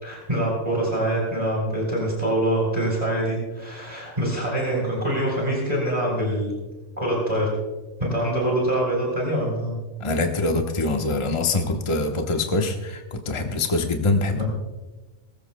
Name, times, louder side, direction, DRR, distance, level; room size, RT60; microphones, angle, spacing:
voice 1, 0.0-6.5 7.0-7.5 8.0-9.8 14.4-14.5, right 1 dB, 30° right, -3 dB, 3.7 m, -24 dB
voice 2, 10.0-14.4, left 2 dB, 25° left, 3 dB, 1.0 m, -24 dB
21.0 x 14.0 x 2.2 m, 1.2 s
omnidirectional pair, 1.3 m